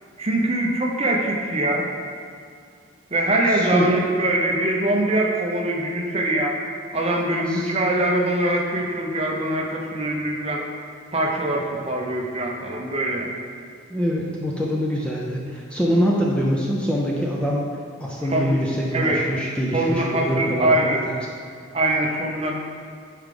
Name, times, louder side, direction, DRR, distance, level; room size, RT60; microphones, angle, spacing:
voice 1, 0.2-1.9 3.1-6.6 6.9-10.6 11.1-13.3 18.3-18.6 18.9-19.2 19.7-21.0 21.7-22.5, right 1 dB, 30° right, 0 dB, 0.8 m, -23 dB
voice 2, 3.5-3.9 7.5-7.7 13.9-17.7 18.0-21.1, equal, 5° left, -3 dB, 0.5 m, -24 dB
8.8 x 4.7 x 3.8 m, 2.3 s
head